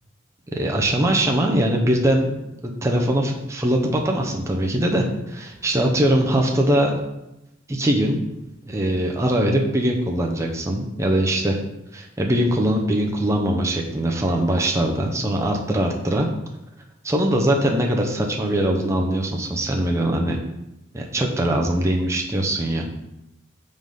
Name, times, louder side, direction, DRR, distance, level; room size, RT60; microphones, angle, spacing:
voice 1, 0.5-2.3 2.6-6.9 7.7-8.2 8.7-11.6 11.9-16.3 17.0-20.4 20.9-22.9, right 1 dB, 15° right, 1 dB, 0.6 m, -21 dB
5.3 x 3.9 x 5.3 m, 0.90 s
head